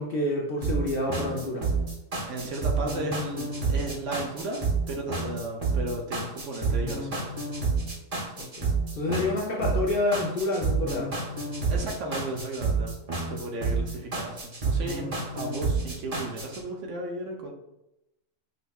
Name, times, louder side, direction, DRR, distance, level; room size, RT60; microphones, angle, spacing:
voice 1, 0.0-1.7 8.4-8.6 8.9-11.1, left 2 dB, 60° left, -3 dB, 0.6 m, -28 dB
sound 1, 0.6-16.6, right 4 dB, 35° right, 0.7 m, -29 dB
voice 2, 2.2-7.1 11.7-12.9 13.2-17.5, right 1 dB, 70° right, 1 dB, 0.9 m, -34 dB
5.2 x 2.1 x 2.3 m, 0.92 s
omnidirectional pair, 1.4 m